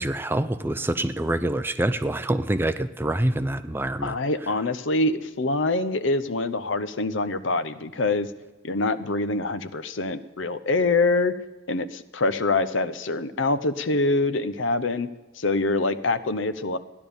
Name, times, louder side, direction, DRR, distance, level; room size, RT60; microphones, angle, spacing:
voice 1, 0.0-4.1, right 1 dB, 10° right, 11 dB, 0.4 m, -26 dB
voice 2, 4.0-8.3 8.6-11.3 11.7-15.1 15.4-16.8, left 2 dB, 75° left, 13 dB, 0.8 m, -25 dB
15.0 x 10.5 x 7.0 m, 1.1 s
head